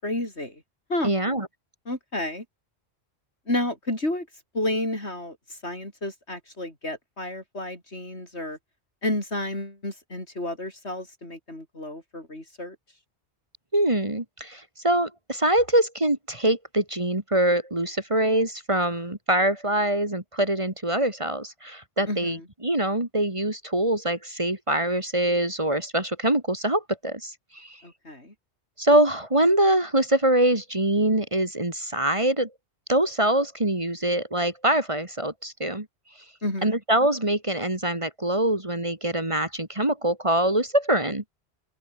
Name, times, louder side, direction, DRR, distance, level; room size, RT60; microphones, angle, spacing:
voice 1, 0.0-0.6 0.9-1.1 1.9-2.4 3.5-4.3 4.5-5.4 5.6-8.6 9.0-12.8 22.1-22.4 27.8-28.3 36.4-36.8, left 1 dB, 80° left, 7.8 m, -31 dB
voice 2, 1.0-1.5 13.7-27.8 28.8-32.5 32.9-35.9 36.6-41.2, right 1 dB, 30° right, 2.6 m, -24 dB
open air
omnidirectional pair, 1.1 m